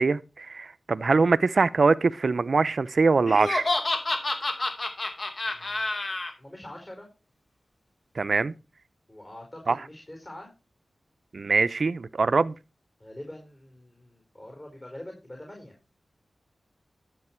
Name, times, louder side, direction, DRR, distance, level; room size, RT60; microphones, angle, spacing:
voice 1, 0.0-3.7 8.2-8.5 9.7-9.8 11.3-12.5, right 4 dB, 65° right, 0.6 m, -23 dB
Laughter, 3.3-6.3, left 2 dB, 50° left, 2.4 m, -28 dB
voice 2, 5.4-5.9 6.4-7.1 9.1-10.5 13.0-15.7, left 1 dB, 30° left, 4.5 m, -44 dB
12.0 x 7.7 x 4.5 m
cardioid pair, 55°, 0 cm